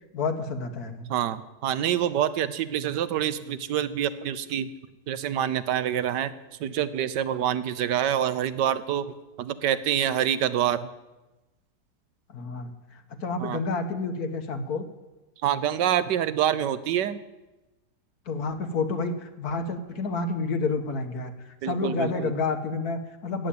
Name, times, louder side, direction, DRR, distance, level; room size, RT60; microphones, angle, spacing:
voice 1, 0.1-1.1 12.3-14.8 18.3-21.3 21.6-23.5, left 3 dB, 65° left, 7 dB, 1.7 m, -29 dB
voice 2, 1.1-4.7 5.1-9.1 9.4-10.9 13.4-13.6 15.4-17.2 21.6-22.3, right 10 dB, 90° right, 14 dB, 1.4 m, -26 dB
15.0 x 8.9 x 8.6 m, 1.1 s
omnidirectional pair, 1.8 m